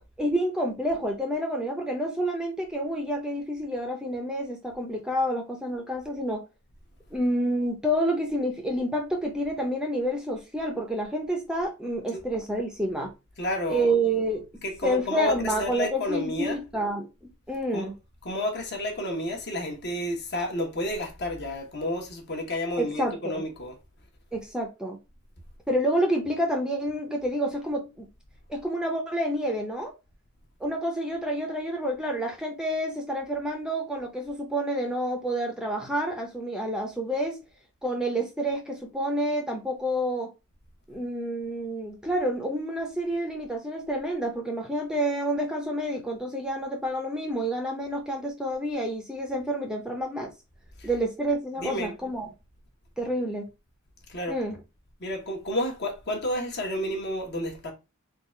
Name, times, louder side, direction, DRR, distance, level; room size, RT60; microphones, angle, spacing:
voice 1, 0.2-6.4 7.1-13.1 13.7-14.5 14.8-17.9 22.8-23.4 24.3-25.0 25.7-28.1 28.5-29.9 30.6-37.4 37.8-40.3 40.9-50.3 50.8-52.3 53.0-53.5 54.3-54.6, right 1 dB, 5° right, 0.6 m, -29 dB
voice 2, 13.4-13.9 14.6-16.6 17.7-17.9 18.2-23.8 50.8-51.0 51.6-52.0 54.1-54.4 55.0-57.7, left 1 dB, 50° left, 1.1 m, -31 dB
3.8 x 2.4 x 4.3 m
head